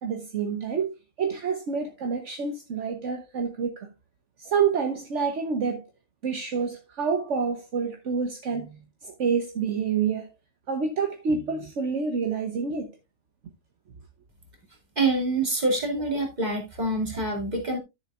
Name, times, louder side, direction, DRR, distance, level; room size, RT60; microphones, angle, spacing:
voice 1, 0.0-0.9 1.2-3.9 4.4-5.9 6.2-10.3 10.7-12.9, right 6 dB, 65° right, 1.3 m, -28 dB
voice 2, 15.0-17.8, right 2 dB, 30° right, 2.6 m, -26 dB
12.5 x 7.2 x 2.4 m
omnidirectional pair, 1.4 m